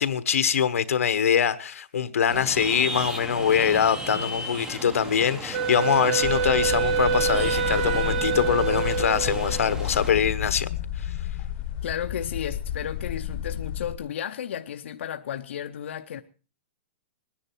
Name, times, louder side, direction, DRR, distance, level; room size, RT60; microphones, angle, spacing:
voice 1, 0.0-10.7 11.0-11.1, left 8 dB, 90° left, 1.1 m, -23 dB
sound 1, 2.3-10.1, right 1 dB, 5° right, 0.8 m, -36 dB
Wind instrument woodwind instrument, 5.5-9.8, right 7 dB, 40° right, 0.8 m, -26 dB
sound 2, 6.2-14.0, left 10 dB, 35° left, 0.9 m, -32 dB
voice 2, 11.8-16.2, left 9 dB, 60° left, 0.7 m, -33 dB
20.5 x 10.0 x 4.5 m
hypercardioid pair, 170°, 7 cm